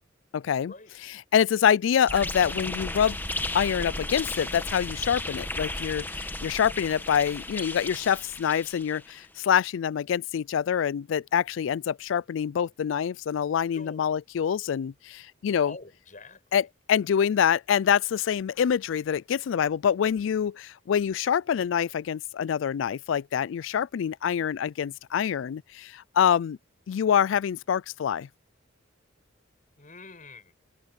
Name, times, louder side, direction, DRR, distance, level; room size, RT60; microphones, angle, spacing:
voice 1, 0.3-0.7 1.0-3.2 3.5-15.7 16.5-26.6 26.9-28.3, left 8 dB, 70° left, 0.3 m, -26 dB
sound 1, 2.1-9.1, left 2 dB, 10° left, 1.3 m, -34 dB
voice 2, 13.7-14.1 15.6-16.7 29.8-30.5, left 3 dB, 40° left, 7.2 m, -46 dB
head